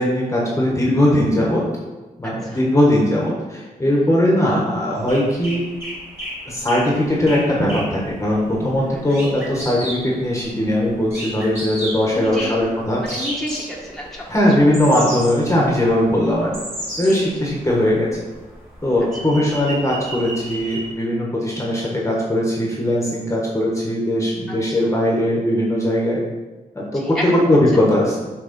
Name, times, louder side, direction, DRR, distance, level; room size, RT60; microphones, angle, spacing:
voice 1, 0.0-1.6 2.2-5.7 6.4-13.0 14.3-16.5 17.0-18.1 18.8-26.2 26.7-28.2, left 1 dB, 20° left, -3 dB, 1.3 m, -19 dB
sound 1, 5.0-20.9, right 1 dB, 15° right, 2.2 m, -34 dB
voice 2, 8.8-9.2 12.1-12.6 13.0-14.2 17.0-17.3 24.7-24.9 26.9-27.4, equal, ahead, -4 dB, 1.4 m, -30 dB
6.6 x 3.4 x 5.2 m, 1.2 s
wide cardioid pair, 100°, 15 cm